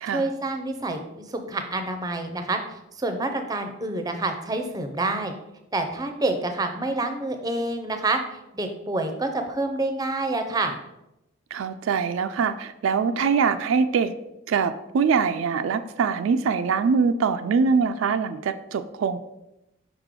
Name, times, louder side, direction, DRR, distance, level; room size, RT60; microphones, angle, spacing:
voice 1, 0.1-5.3 5.7-8.2 8.5-10.8, right 2 dB, 20° right, 6 dB, 0.5 m, -27 dB
voice 2, 11.5-14.1 14.5-19.2, right 5 dB, 80° right, 9 dB, 0.3 m, -23 dB
5.3 x 4.9 x 3.6 m, 0.90 s
head